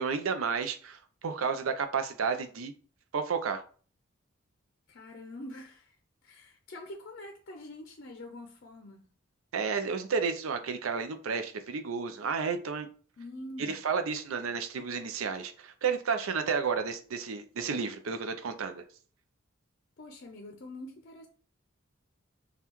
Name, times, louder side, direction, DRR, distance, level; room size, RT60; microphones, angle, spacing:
voice 1, 0.0-2.7 3.1-3.6 9.5-12.9 13.7-18.8, right 5 dB, 85° right, 0.5 m, -32 dB
voice 2, 4.9-6.0 6.2-9.1 13.2-13.8 20.0-21.3, left 1 dB, 50° left, 0.5 m, -45 dB
5.4 x 2.3 x 3.0 m
head